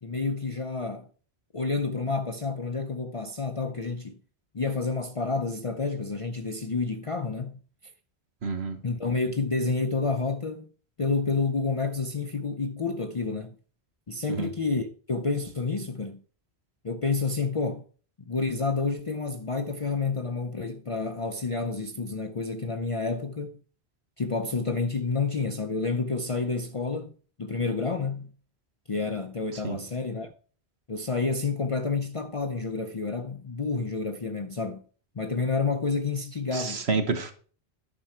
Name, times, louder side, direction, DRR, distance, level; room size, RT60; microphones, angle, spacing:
voice 1, 0.0-1.1 1.5-4.2 4.5-7.6 8.8-10.7 11.0-13.6 14.1-16.2 16.8-17.8 18.3-23.6 24.2-27.1 27.4-28.3 28.9-30.3 30.9-34.8 35.1-36.8, left 4 dB, 35° left, 0.6 m, -29 dB
voice 2, 8.4-8.8 14.3-14.5 29.6-29.8 36.5-37.3, right 4 dB, 90° right, 1.6 m, -28 dB
10.5 x 6.1 x 4.3 m
omnidirectional pair, 1.0 m